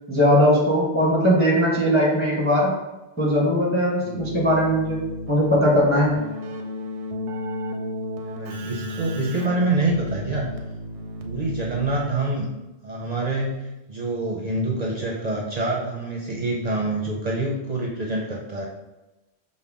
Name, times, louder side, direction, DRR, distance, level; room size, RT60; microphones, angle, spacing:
voice 1, 0.1-2.7 3.2-5.0 5.3-6.2, equal, 10° left, -4 dB, 0.9 m, -19 dB
Keyboard (musical), 4.0-12.4, left 1 dB, 90° right, 0.9 m, -33 dB
voice 2, 8.2-10.5 11.2-12.5 12.8-18.7, right 2 dB, 45° right, -2 dB, 0.6 m, -26 dB
5.3 x 2.1 x 3.5 m, 1.0 s
omnidirectional pair, 1.1 m